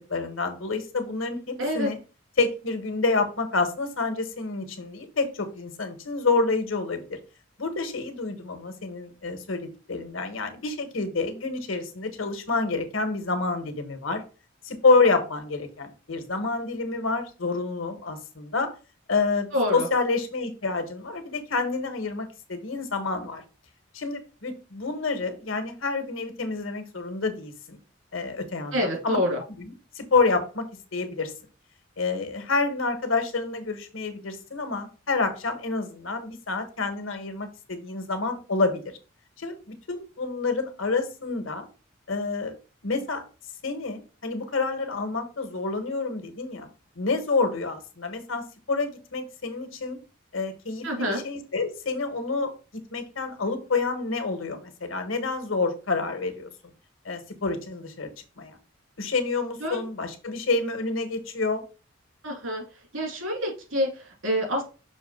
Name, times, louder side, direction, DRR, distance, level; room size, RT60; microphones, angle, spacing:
voice 1, 0.1-2.0 2.4-7.2 7.6-14.2 14.6-18.7 19.1-23.4 23.9-27.8 28.1-28.8 29.0-29.2 29.9-30.6 30.9-31.3 32.0-38.9 39.4-41.7 42.1-42.6 42.8-43.2 43.6-46.7 46.9-50.0 50.3-52.5 52.9-56.5 57.0-58.1 58.4-58.5 59.0-61.6, left 3 dB, 80° left, 7 dB, 1.3 m, -28 dB
voice 2, 1.6-1.9 19.5-19.9 28.7-29.4 50.8-51.2 59.6-59.8 62.2-62.6 62.9-64.6, equal, 80° right, 1 dB, 2.6 m, -27 dB
6.2 x 3.1 x 5.3 m, 0.33 s
head